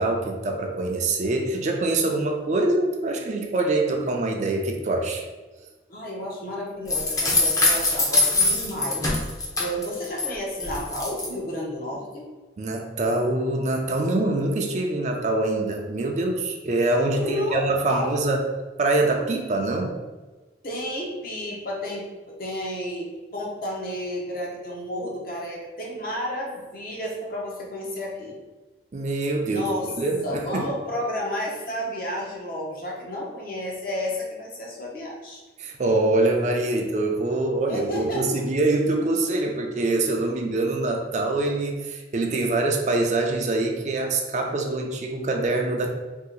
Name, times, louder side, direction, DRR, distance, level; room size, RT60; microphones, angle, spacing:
voice 1, 0.0-5.2 12.6-18.4 18.8-20.0 28.9-29.6 30.0-30.7 35.6-45.9, right 2 dB, 40° right, 2 dB, 0.4 m, -24 dB
voice 2, 5.9-12.3 17.2-18.1 20.6-28.4 29.4-29.9 30.2-35.4 36.8-36.9 37.7-38.4, left 1 dB, 55° left, -2 dB, 0.7 m, -31 dB
sound 1, 6.9-10.3 10.6-11.3, left 2 dB, 20° left, 0.5 m, -23 dB
2.7 x 2.4 x 3.7 m, 1.3 s
head